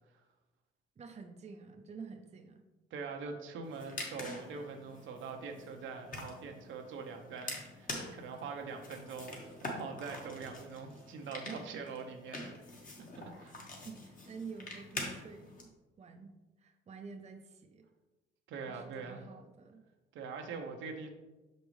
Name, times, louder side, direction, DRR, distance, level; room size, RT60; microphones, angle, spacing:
voice 1, 1.0-2.6 13.8-15.7 16.0-16.3 16.6-17.9 18.7-19.9, right 5 dB, 35° right, 5 dB, 0.6 m, -49 dB
voice 2, 2.9-12.5 13.0-13.1 13.4-13.5 18.5-19.2 20.1-21.1, right 5 dB, 75° right, 4 dB, 0.8 m, -43 dB
sound 1, 3.6-15.6, left 2 dB, 40° left, 1.4 m, -45 dB
6.0 x 5.4 x 3.1 m, 1.1 s
cardioid pair, 90°, 20 cm